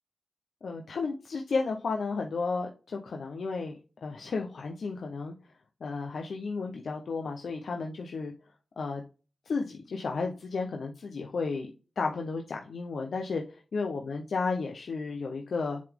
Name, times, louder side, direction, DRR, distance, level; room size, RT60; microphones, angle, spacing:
voice 1, 0.6-5.3 5.8-8.3 8.8-9.0 9.5-11.7 12.0-15.8, left 4 dB, 80° left, 2 dB, 0.7 m, -33 dB
7.4 x 4.0 x 3.6 m, 0.34 s
cardioid pair, 45°, 0 cm